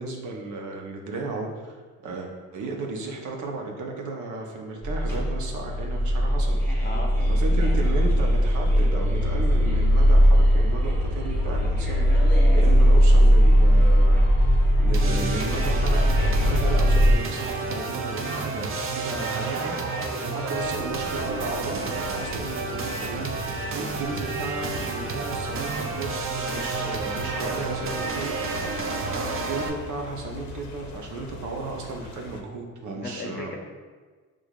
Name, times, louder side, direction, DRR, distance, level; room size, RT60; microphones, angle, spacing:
voice 1, 0.0-1.7 2.0-6.9 7.3-14.5 14.8-26.2 26.5-28.6 29.1-33.5, right 3 dB, 75° right, 1 dB, 0.8 m, -34 dB
sound 1, 4.8-17.1, equal, 5° left, 1.4 m, -19 dB
voice 2, 6.8-7.2 26.8-28.0 28.6-29.1 32.9-33.6, left 2 dB, 35° left, 1 dB, 0.6 m, -39 dB
sound 2, 14.9-29.7, right 3 dB, 45° right, 0.5 m, -31 dB
sound 3, 20.5-32.4, left 3 dB, 70° left, 0.6 m, -41 dB
6.3 x 2.5 x 2.4 m, 1.4 s
cardioid pair, 90°, 30 cm